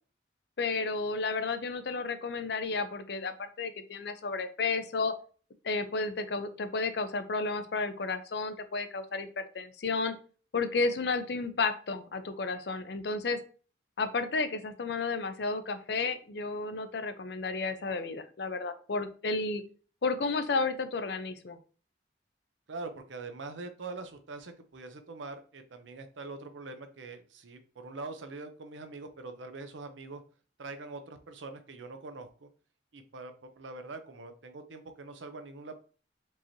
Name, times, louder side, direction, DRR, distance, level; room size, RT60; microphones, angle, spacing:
voice 1, 0.6-5.1 5.6-10.1 10.5-13.4 14.0-19.6 20.0-21.6, left 3 dB, 65° left, 10 dB, 0.5 m, -32 dB
voice 2, 22.7-30.2 30.6-32.5 32.9-35.8, right 3 dB, 90° right, 8 dB, 0.6 m, -43 dB
4.5 x 3.0 x 2.7 m, 0.39 s
head